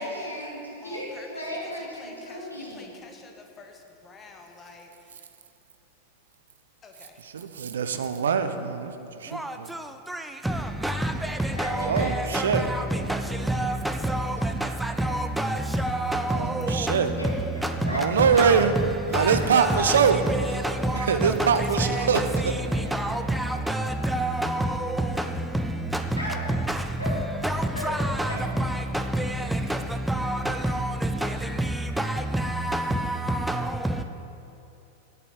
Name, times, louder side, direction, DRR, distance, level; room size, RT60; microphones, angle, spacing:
voice 1, 0.0-2.9 11.5-13.5 14.0-14.3 15.0-15.1 17.2-18.8 19.3-19.4 19.7-20.6 20.9-23.0 23.2-23.9 26.2-26.4 27.0-27.2 27.7-27.9 28.3-28.4, equal, 85° left, 2.2 m, -36 dB
voice 2, 0.8-1.4 2.0-5.2 6.8-7.6, left 4 dB, 25° left, 1.2 m, -49 dB
voice 3, 7.2-8.9 9.2-9.4 11.9-12.7 16.3-17.1 17.9-18.7 19.1-20.2 21.1-22.5, right 6 dB, 65° right, 0.6 m, -23 dB
voice 4, 9.3-34.0, right 1 dB, 5° right, 0.4 m, -28 dB
8.6 x 6.8 x 8.6 m
figure-of-eight pair, 90°, 0 cm